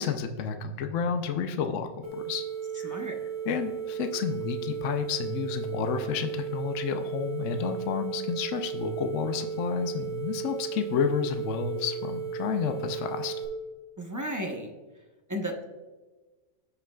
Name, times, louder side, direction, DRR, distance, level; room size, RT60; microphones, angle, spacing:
voice 1, 0.0-2.4 2.7-3.0 3.5-13.3, left 7 dB, 65° left, 6 dB, 0.9 m, -30 dB
sound 1, 2.0-13.5, right 8 dB, 50° right, 2.6 m, -35 dB
voice 2, 2.8-3.2 14.0-14.7 15.3-15.6, equal, 25° right, 2 dB, 0.4 m, -33 dB
14.5 x 5.8 x 2.3 m, 1.3 s
omnidirectional pair, 1.5 m